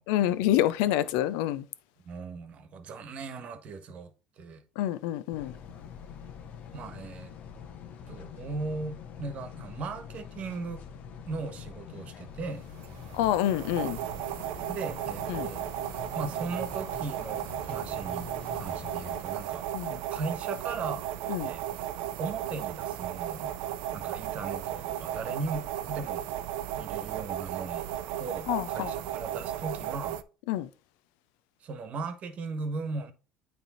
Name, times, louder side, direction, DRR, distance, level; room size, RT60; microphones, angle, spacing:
voice 1, 0.1-1.6 4.8-5.5 13.1-14.0 15.3-15.5 19.7-20.0 21.3-21.5 28.5-28.9 30.5-30.7, left 12 dB, 85° left, 0.5 m, -27 dB
voice 2, 2.0-4.6 6.7-7.3 8.1-10.8 11.2-12.7 14.7-15.6 16.1-21.1 21.4-21.9 22.2-23.5 23.9-26.3 26.8-27.9 28.2-30.2 31.6-33.1, right 4 dB, 50° right, 1.3 m, -38 dB
sound 1, 5.3-19.2, left 8 dB, 60° left, 1.0 m, -45 dB
sound 2, 12.8-30.2, right 11 dB, 80° right, 0.5 m, -35 dB
9.1 x 3.4 x 4.2 m
supercardioid pair, 90°, 3 cm